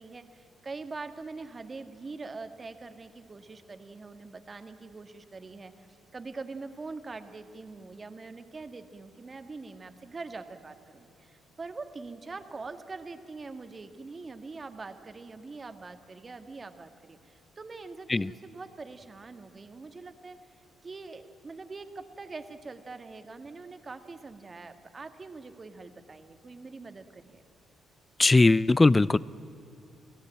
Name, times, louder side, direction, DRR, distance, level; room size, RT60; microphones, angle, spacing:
voice 1, 0.0-20.4 20.8-27.4, right 3 dB, 30° right, 8 dB, 1.7 m, -43 dB
voice 2, 28.2-29.2, left 2 dB, 20° left, 20 dB, 0.5 m, -20 dB
28.0 x 16.5 x 8.9 m, 2.8 s
cardioid pair, 90°, 0 cm